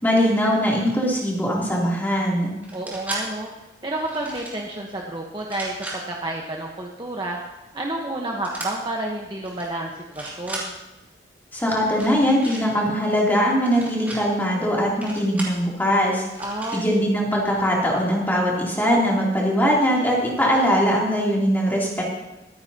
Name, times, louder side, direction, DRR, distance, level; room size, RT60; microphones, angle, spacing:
voice 1, 0.0-2.5 11.5-16.3 16.7-22.0, equal, 10° left, -4 dB, 2.9 m, -21 dB
sound 1, 2.6-3.2 4.0-4.6 5.4-6.0 8.4-8.7 9.4-9.7 10.0-10.6 11.9-12.6 13.6-14.2 15.0-15.6 16.3-16.8, right 2 dB, 10° right, 2.8 m, -35 dB
voice 2, 2.7-3.5 3.8-7.4 7.7-10.7 16.4-16.8, right 1 dB, 25° right, -1 dB, 1.1 m, -30 dB
23.0 x 9.8 x 2.9 m, 1.0 s
head